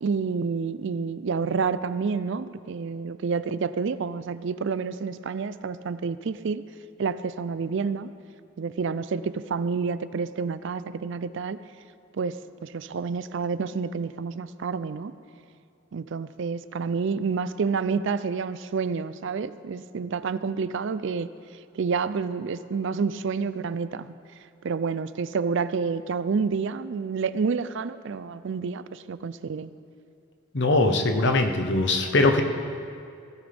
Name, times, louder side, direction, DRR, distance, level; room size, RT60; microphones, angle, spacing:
voice 1, 0.0-6.6 7.0-8.1 8.6-11.6 12.1-15.1 15.9-21.3 21.7-24.1 24.6-29.7, right 5 dB, 60° right, 14 dB, 0.4 m, -29 dB
voice 2, 30.5-32.4, left 2 dB, 55° left, 5 dB, 1.0 m, -21 dB
16.0 x 16.0 x 3.5 m, 2.4 s
head